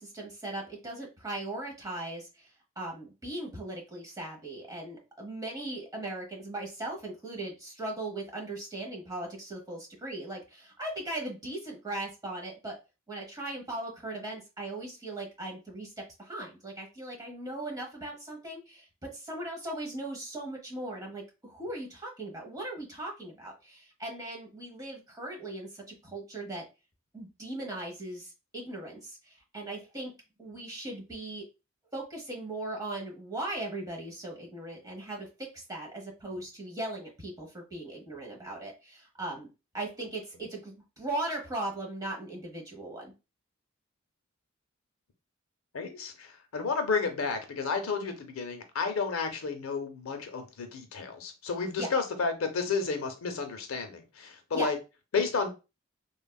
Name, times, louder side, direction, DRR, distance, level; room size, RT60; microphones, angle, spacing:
voice 1, 0.0-2.5 2.8-12.8 13.1-15.9 16.2-26.6 27.1-30.1 30.4-31.4 31.9-39.5 39.7-43.1 51.8-51.9 54.5-54.7, right 2 dB, 20° right, 0 dB, 1.0 m, -38 dB
voice 2, 45.7-54.8 55.1-55.5, left 4 dB, 75° left, 6 dB, 0.6 m, -31 dB
3.4 x 2.3 x 2.3 m, 0.28 s
head